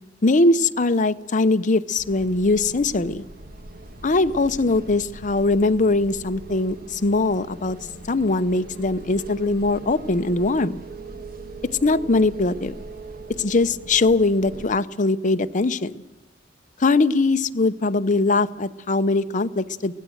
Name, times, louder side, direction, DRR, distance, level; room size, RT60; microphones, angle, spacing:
voice 1, 0.2-3.2 4.0-7.8 8.1-10.8 11.8-12.8 13.4-16.0 16.8-19.9, left 3 dB, 40° left, 11 dB, 0.7 m, -21 dB
sound 1, 2.0-14.7, right 2 dB, 50° right, 1.5 m, -40 dB
23.5 x 17.5 x 7.9 m, 1.1 s
head